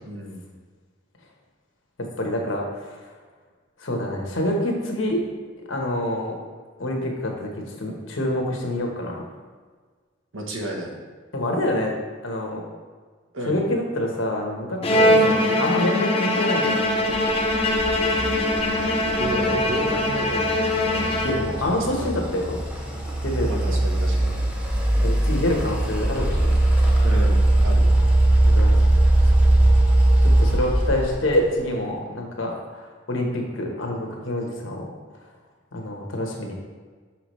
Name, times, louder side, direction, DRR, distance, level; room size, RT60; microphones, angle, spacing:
voice 1, 0.0-0.5 10.3-10.9 13.3-13.6 14.9-15.2 19.2-20.6 21.6-22.1 23.4-24.3 27.0-28.0 32.0-32.2, right 1 dB, 85° right, 1 dB, 1.1 m, -32 dB
voice 2, 2.2-3.0 3.8-5.2 5.7-6.3 6.8-7.5 7.8-9.2 11.3-11.9 12.2-12.6 13.5-17.1 21.2-22.6 23.2-23.5 25.0-26.4 28.4-28.8 29.2-29.3 30.2-34.9 35.7-36.5, left 1 dB, 90° left, 1 dB, 1.2 m, -26 dB
Bowed string instrument, 14.8-21.8, left 1 dB, 30° left, 0.6 m, -22 dB
sound 1, 17.1-31.6, right 1 dB, 5° right, 0.8 m, -20 dB
6.0 x 5.8 x 3.1 m, 1.5 s
head